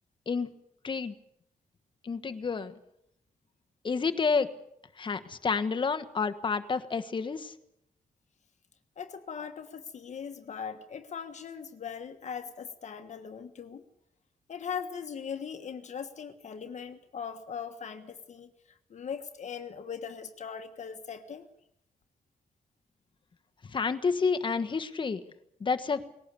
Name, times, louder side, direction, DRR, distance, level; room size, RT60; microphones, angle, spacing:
voice 1, 0.8-1.1 2.0-2.7 3.8-4.5 5.0-7.5 23.7-25.2 25.6-26.0, left 5 dB, 35° left, 8 dB, 1.4 m, -29 dB
voice 2, 9.0-13.8 14.5-18.5 18.9-21.5, left 7 dB, 55° left, 8 dB, 1.5 m, -40 dB
20.0 x 17.5 x 8.4 m, 0.76 s
wide cardioid pair, 150°, 15 cm